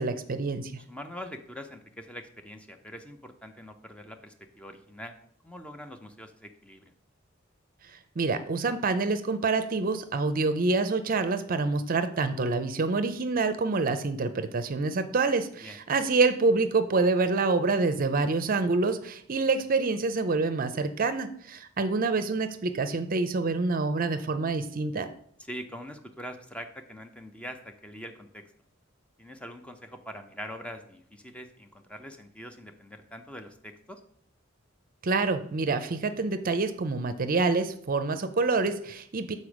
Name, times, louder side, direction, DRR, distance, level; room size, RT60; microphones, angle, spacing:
voice 1, 0.0-0.7 8.2-25.1 35.0-39.3, right 3 dB, 45° right, 10 dB, 0.5 m, -27 dB
voice 2, 0.9-5.1 5.4-6.9 15.6-15.8 25.4-28.4 29.2-34.0, equal, 5° left, 6 dB, 0.6 m, -43 dB
6.8 x 4.2 x 6.0 m, 0.64 s
head